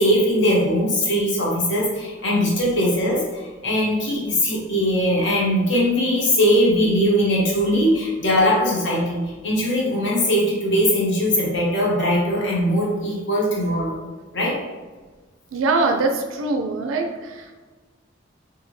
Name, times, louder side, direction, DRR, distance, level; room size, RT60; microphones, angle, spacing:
voice 1, 0.0-13.9 14.3-14.6, equal, 65° left, -4 dB, 1.1 m, -20 dB
voice 2, 15.5-17.3, right 3 dB, 85° right, 4 dB, 0.4 m, -22 dB
3.3 x 2.6 x 3.1 m, 1.3 s
head